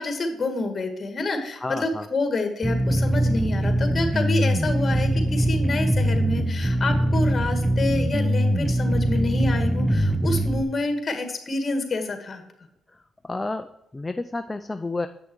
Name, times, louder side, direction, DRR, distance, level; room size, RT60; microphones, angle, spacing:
voice 1, 0.0-12.4, left 2 dB, 35° left, 5 dB, 2.0 m, -28 dB
voice 2, 1.5-2.1 7.0-7.2 12.9-13.0 13.2-15.1, left 2 dB, 15° left, 8 dB, 0.5 m, -31 dB
sound 1, 2.6-10.6, right 1 dB, 10° right, 0.8 m, -22 dB
8.3 x 6.2 x 4.6 m, 0.86 s
cardioid pair, 90°, 0 cm